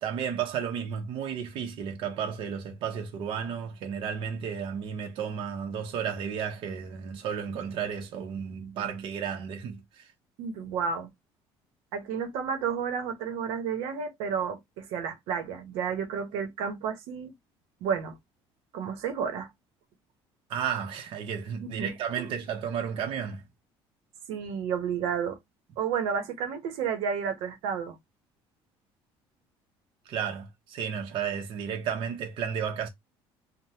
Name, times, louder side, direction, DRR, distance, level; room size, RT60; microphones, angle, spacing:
voice 1, 0.0-10.1 20.5-23.4 30.1-32.9, right 7 dB, 55° right, 0.8 m, -33 dB
voice 2, 10.4-11.1 11.9-17.3 17.8-18.1 18.7-19.5 21.6-22.3 24.3-25.4 25.8-28.0, right 7 dB, 85° right, 0.8 m, -31 dB
3.3 x 2.1 x 2.8 m
cardioid pair, 155°, 10 cm